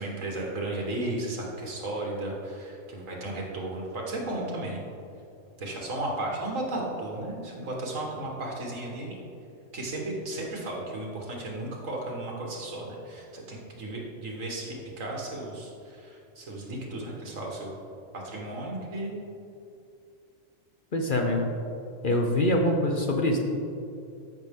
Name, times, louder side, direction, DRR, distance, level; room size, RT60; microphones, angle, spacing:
voice 1, 0.0-4.8 5.6-9.2 9.7-17.8 18.1-19.2, right 1 dB, 75° right, -2 dB, 1.9 m, -34 dB
voice 2, 20.9-21.5 22.0-23.4, left 1 dB, 45° left, 2 dB, 0.8 m, -24 dB
13.0 x 6.0 x 3.6 m, 2.6 s
omnidirectional pair, 1.4 m